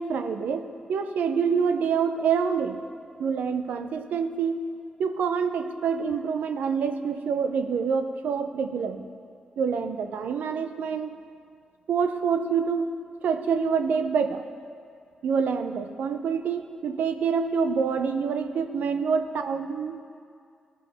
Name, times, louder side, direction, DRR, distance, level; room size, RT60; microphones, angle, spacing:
voice 1, 0.0-2.8 3.2-4.7 5.0-9.1 9.6-11.1 11.9-13.0 13.2-14.4 15.2-20.0, right 6 dB, 75° right, 8 dB, 0.5 m, -26 dB
14.5 x 5.4 x 3.4 m, 2.3 s
supercardioid pair, 45°, 3 cm